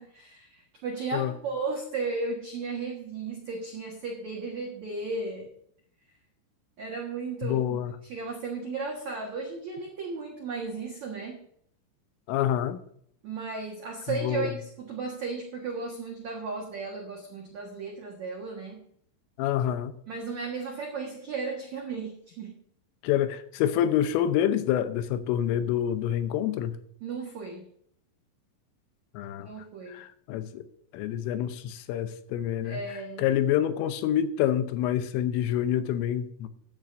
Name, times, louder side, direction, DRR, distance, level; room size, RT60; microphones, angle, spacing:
voice 1, 0.0-5.5 6.8-11.4 13.2-18.8 20.1-22.6 27.0-27.7 29.4-30.0 32.6-33.3, right 4 dB, 90° right, 0 dB, 1.6 m, -35 dB
voice 2, 7.4-7.9 12.3-12.8 14.1-14.5 19.4-19.9 23.0-26.7 29.1-29.5 29.9-30.6 30.9-36.5, left 10 dB, 80° left, 10 dB, 3.3 m, -27 dB
14.5 x 10.5 x 2.6 m, 0.66 s
omnidirectional pair, 5.9 m